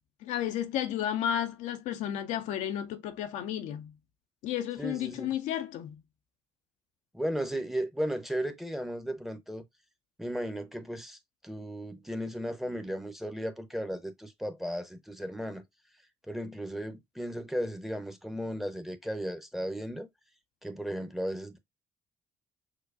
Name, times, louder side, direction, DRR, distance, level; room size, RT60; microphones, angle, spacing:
voice 1, 0.2-3.9 4.4-6.0, left 10 dB, 55° left, 0.4 m, -32 dB
voice 2, 4.8-5.3 7.1-9.6 10.2-11.2 11.4-15.6 16.3-20.1 20.6-21.6, equal, ahead, 0.7 m, -35 dB
6.4 x 2.2 x 2.3 m
figure-of-eight pair, 45°, 15 cm